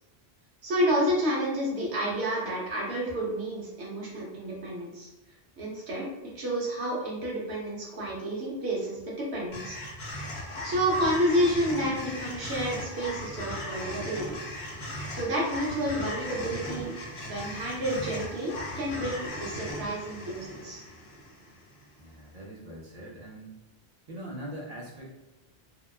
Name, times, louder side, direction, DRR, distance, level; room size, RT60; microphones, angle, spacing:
voice 1, 0.6-5.1 5.6-6.1 6.3-9.8 10.6-14.4 15.1-17.0 17.2-20.8, equal, 80° right, -4 dB, 1.1 m, -30 dB
sound 1, 9.5-21.8, left 1 dB, 75° left, 1.0 m, -38 dB
voice 2, 22.0-23.6 24.1-25.0, right 1 dB, 50° right, -4 dB, 0.5 m, -42 dB
2.8 x 2.1 x 2.3 m, 1.0 s
omnidirectional pair, 1.1 m